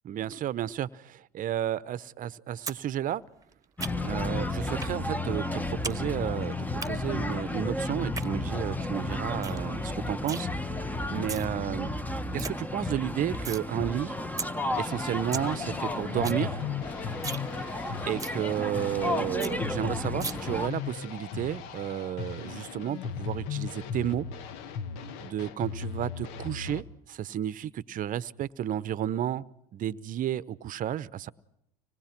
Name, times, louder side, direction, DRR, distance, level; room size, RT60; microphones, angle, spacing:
voice 1, 0.0-3.2 4.0-10.5 10.8-11.9 12.3-14.2 14.8-16.6 18.1-24.3 25.2-29.4 29.7-31.3, right 11 dB, 45° right, 19 dB, 0.9 m, -32 dB
sound 1, 2.7-2.8 3.1-4.2 4.8-5.0 5.3-6.0 6.2-6.9 7.9-8.3 8.7-8.8 9.1-9.2 9.4-9.6 9.9-10.4 11.0-11.5 11.9-12.0 12.2-12.5 12.9-13.6 14.0-14.1 14.4-14.5 14.9-15.0 15.1-15.5 15.8-15.9 16.1-16.4 16.7-16.8 17.1-17.5 17.8-17.9 18.2-18.4 18.8-18.9 19.1-19.2 19.4-19.5 20.2-20.3, right 4 dB, 15° right, 1.4 m, -36 dB
sound 2, 3.8-20.7, left 2 dB, 10° left, 1.3 m, -33 dB
sound 3, 14.7-26.8, left 6 dB, 70° left, 1.5 m, -37 dB
26.0 x 19.5 x 6.0 m, 0.80 s
hypercardioid pair, 85°, 19 cm